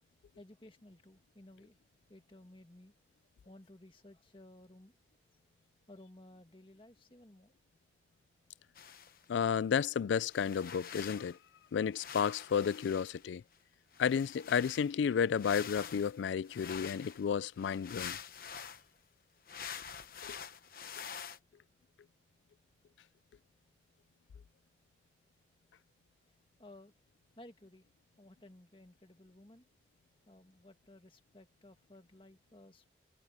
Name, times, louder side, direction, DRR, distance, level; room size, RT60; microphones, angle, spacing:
voice 1, 0.4-1.8 2.1-2.9 3.5-5.0 5.9-7.5 18.8-18.9 26.6-26.9 27.4-27.9 28.2-29.7 30.3-32.9, left 1 dB, 30° left, 1.8 m, -57 dB
sound 1, 8.8-9.2 10.3-11.4 11.9-13.3 13.9-18.8 19.5-21.4, left 7 dB, 55° left, 1.1 m, -46 dB
voice 2, 9.3-11.4 11.7-13.4 14.0-18.2 20.2-20.4, left 7 dB, 90° left, 0.3 m, -32 dB
head